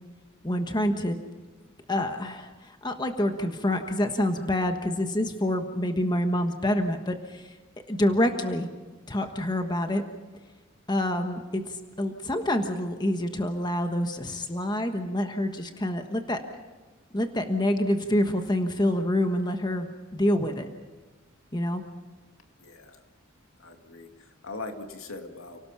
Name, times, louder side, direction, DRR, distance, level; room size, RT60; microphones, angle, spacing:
voice 1, 0.4-1.2 1.9-7.4 7.9-8.7 9.1-10.0 10.9-11.6 12.0-16.4 17.1-20.7 21.5-21.8, left 1 dB, 20° left, 6 dB, 1.3 m, -27 dB
voice 2, 22.6-23.0 23.6-25.6, left 3 dB, 80° left, 4 dB, 2.4 m, -41 dB
29.5 x 18.5 x 5.8 m, 1.3 s
head